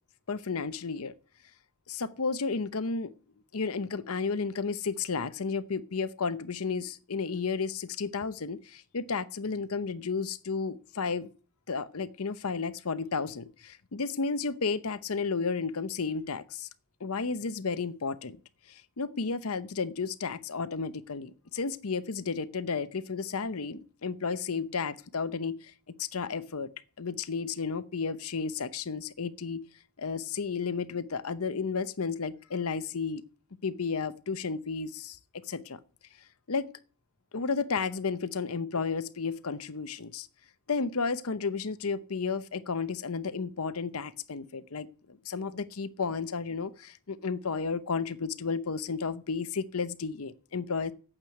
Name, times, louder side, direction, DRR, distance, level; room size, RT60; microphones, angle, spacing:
voice 1, 0.3-1.1 1.9-3.1 3.5-11.3 11.7-16.7 17.0-18.4 18.7-26.7 27.0-29.6 30.0-33.2 33.6-35.8 36.5-36.7 37.3-40.3 40.7-50.9, left 5 dB, 70° left, 0.8 m, -32 dB
8.8 x 8.2 x 9.2 m
head